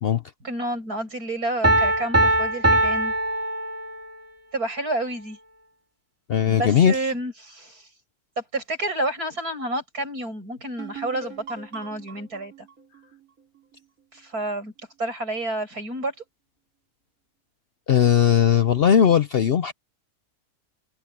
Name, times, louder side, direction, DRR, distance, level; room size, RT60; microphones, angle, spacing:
voice 1, 0.4-3.1 4.5-5.4 6.5-7.8 8.4-12.5 14.1-14.7 15.0-16.1, right 2 dB, 85° right, 8.3 m, -29 dB
Piano, 1.6-4.2, right 1 dB, 10° right, 2.4 m, -21 dB
voice 2, 6.3-7.0 17.9-19.7, left 8 dB, 60° left, 0.6 m, -18 dB
sound 1, 10.8-14.4, right 5 dB, 65° right, 3.8 m, -42 dB
omnidirectional pair, 1.6 m